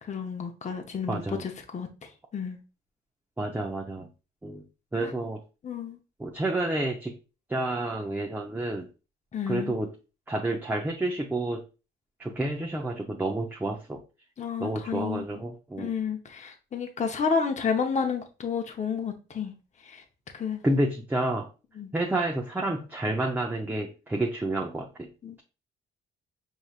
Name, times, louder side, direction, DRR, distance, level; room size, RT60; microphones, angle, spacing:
voice 1, 0.0-2.6 5.0-5.1 5.6-6.0 9.3-9.8 14.4-15.3 15.8-19.5 19.8-20.0 20.3-20.6 21.8-21.9 25.2-25.4, left 6 dB, 35° left, 0.8 m, -31 dB
voice 2, 1.1-1.4 3.4-4.1 4.4-4.6 4.9-5.4 6.2-7.1 7.5-8.9 9.5-9.9 10.3-11.6 12.2-14.0 14.6-15.9 20.6-21.5 21.9-25.1, right 1 dB, 10° right, 0.6 m, -29 dB
5.4 x 3.1 x 2.4 m
cardioid pair, 90°, 20 cm